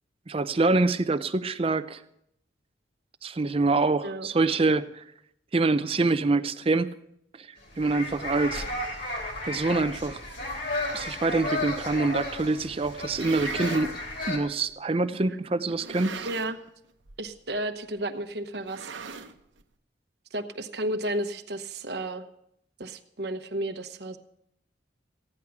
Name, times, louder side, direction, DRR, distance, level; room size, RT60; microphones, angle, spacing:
voice 1, 0.3-2.0 3.2-5.0 5.5-6.9 7.4-7.5 7.8-8.6 9.4-10.2 10.9-13.9 14.3-16.3, right 3 dB, 30° right, 12 dB, 0.5 m, -25 dB
sound 1, 7.6-14.4, left 2 dB, 65° left, 3.2 m, -33 dB
sound 2, 12.9-13.9 14.7-14.8 15.7-16.7 17.0-17.3 17.5-17.6 18.5-19.6, right 5 dB, 90° right, 0.9 m, -39 dB
voice 2, 16.2-16.6 17.2-18.9 20.3-22.2 22.8-24.2, right 1 dB, 60° right, 8 dB, 1.0 m, -32 dB
15.5 x 10.0 x 5.9 m, 0.76 s
head